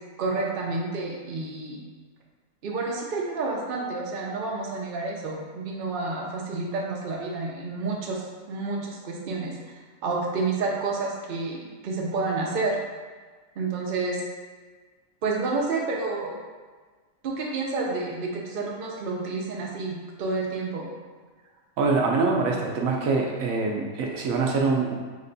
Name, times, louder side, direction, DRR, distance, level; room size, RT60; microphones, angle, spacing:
voice 1, 0.2-1.8 2.6-8.2 8.5-9.5 10.0-12.8 13.6-14.2 15.2-16.4 17.2-20.9, right 3 dB, 55° right, -2 dB, 0.7 m, -29 dB
voice 2, 21.8-25.0, right 4 dB, 75° right, 0 dB, 1.0 m, -24 dB
4.1 x 2.2 x 3.8 m, 1.4 s
omnidirectional pair, 1.5 m